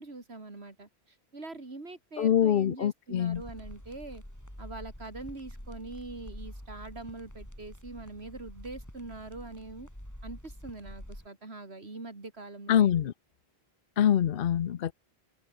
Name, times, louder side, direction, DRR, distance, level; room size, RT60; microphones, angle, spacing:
voice 1, 0.0-4.2 4.6-9.9 10.2-12.9, right 3 dB, 80° right, 3.6 m, -43 dB
voice 2, 2.2-3.4 12.7-13.1 14.0-14.9, left 10 dB, 60° left, 0.8 m, -24 dB
sound 1, 3.3-11.3, equal, 15° left, 7.9 m, -46 dB
open air
omnidirectional pair, 1.1 m